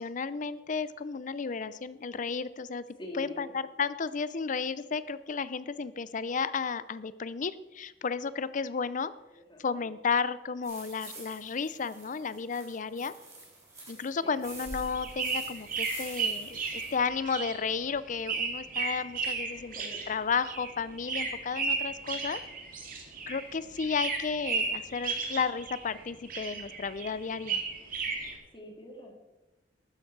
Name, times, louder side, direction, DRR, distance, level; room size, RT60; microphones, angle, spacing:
voice 1, 0.0-2.8 3.1-9.1 9.6-13.1 13.9-22.4 23.3-27.6, left 5 dB, 45° left, 16 dB, 0.5 m, -33 dB
voice 2, 3.0-3.5 9.3-9.8 14.2-14.4 19.5-20.0 28.5-29.1, left 1 dB, 25° left, 1 dB, 2.4 m, -45 dB
sound 1, 10.6-17.0, right 2 dB, 15° right, 3.9 m, -48 dB
sound 2, 14.4-23.5 23.8-26.0 26.3-28.3, right 4 dB, 50° right, 2.1 m, -34 dB
12.5 x 9.8 x 4.7 m, 1.0 s
head